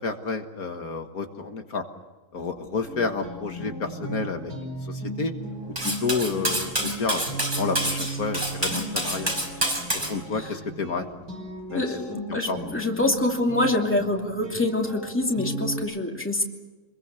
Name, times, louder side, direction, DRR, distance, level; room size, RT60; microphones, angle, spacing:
voice 1, 0.0-1.8 2.3-4.5 4.8-5.3 5.8-7.2 7.6-9.3 9.9-11.1 11.7-12.0 12.3-12.8, left 4 dB, 65° left, 5 dB, 2.0 m, -30 dB
sound 1, 2.3-15.8, right 1 dB, 85° right, 6.5 m, -36 dB
Cutlery silverware, 5.8-10.1, right 1 dB, 30° right, 5.7 m, -27 dB
voice 2, 11.7-16.4, left 2 dB, 5° left, 1 dB, 2.7 m, -25 dB
27.5 x 22.0 x 7.0 m, 1.3 s
omnidirectional pair, 1.7 m